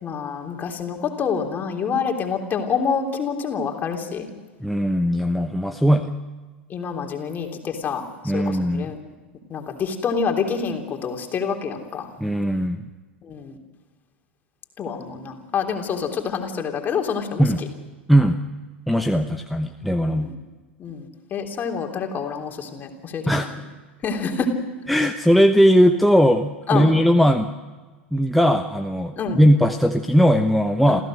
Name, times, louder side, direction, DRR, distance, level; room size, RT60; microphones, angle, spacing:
voice 1, 0.0-4.3 6.7-8.0 8.3-9.0 9.5-12.1 13.2-13.6 14.8-17.7 20.0-20.4 20.8-23.5 24.0-24.5 26.7-27.0 29.2-29.4 30.9-31.0, left 6 dB, 30° left, 3 dB, 3.4 m, -27 dB
voice 2, 4.6-6.1 8.2-8.9 12.2-12.8 17.4-17.6 18.1-18.4 18.9-20.3 23.3-23.5 24.9-27.5 28.1-31.0, equal, ahead, 4 dB, 1.0 m, -18 dB
28.0 x 15.5 x 6.5 m, 1.3 s
hypercardioid pair, 90°, 6 cm